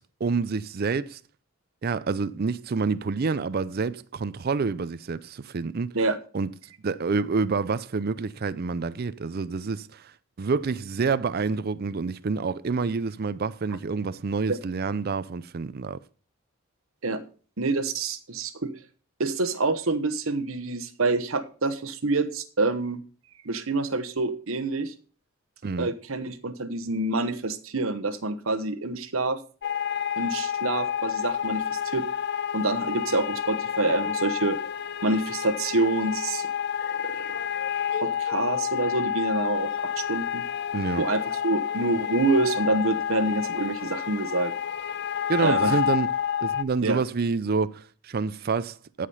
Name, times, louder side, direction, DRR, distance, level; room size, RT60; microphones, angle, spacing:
voice 1, 0.2-1.2 1.8-5.9 6.3-6.5 6.8-10.1 10.4-16.0 25.6-25.9 40.7-41.0 45.3-46.1 46.4-49.1, right 4 dB, 45° right, 0.4 m, -28 dB
voice 2, 17.6-18.7 19.2-23.0 23.4-24.9 25.8-29.4 30.2-32.0 32.5-34.6 35.0-36.5 36.9-37.4 37.9-40.4 41.0-44.5 45.4-45.8 46.8-47.0, right 2 dB, 70° right, 1.0 m, -27 dB
sound 1, 29.6-46.6, left 8 dB, 50° left, 0.5 m, -29 dB
14.0 x 5.0 x 5.4 m
head